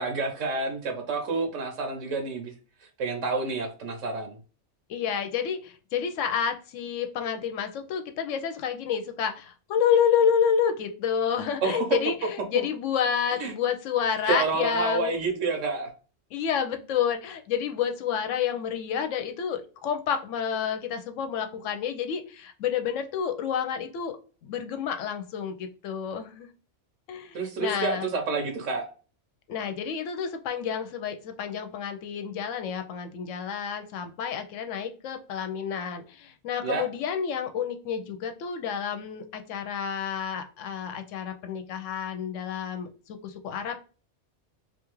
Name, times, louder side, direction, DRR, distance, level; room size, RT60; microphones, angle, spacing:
voice 1, 0.0-2.5 3.0-4.4 11.6-11.9 12.5-12.6 13.4-13.5 14.3-15.9 27.3-28.8 36.6-36.8, right 3 dB, 90° right, 4 dB, 1.1 m, -29 dB
voice 2, 4.9-15.2 16.3-24.2 24.4-26.5 27.1-28.1 29.5-43.8, left 7 dB, 90° left, 7 dB, 0.9 m, -29 dB
2.8 x 2.4 x 3.0 m, 0.37 s
omnidirectional pair, 1.3 m